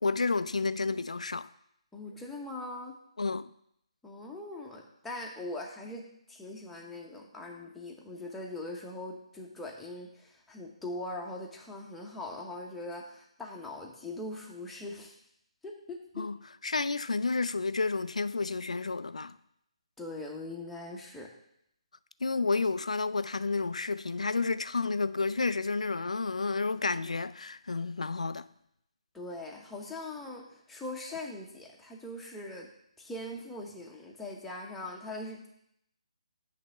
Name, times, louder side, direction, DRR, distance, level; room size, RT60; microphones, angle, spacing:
voice 1, 0.0-1.5 3.2-3.5 16.2-19.4 22.2-28.5, left 4 dB, 75° left, 0.4 m, -31 dB
voice 2, 1.9-3.0 4.0-6.0 6.3-15.2 15.6-16.3 20.0-21.3 29.1-32.7 33.0-35.5, left 2 dB, 5° left, 1.0 m, -41 dB
7.8 x 3.4 x 6.4 m
figure-of-eight pair, 145°, 4 cm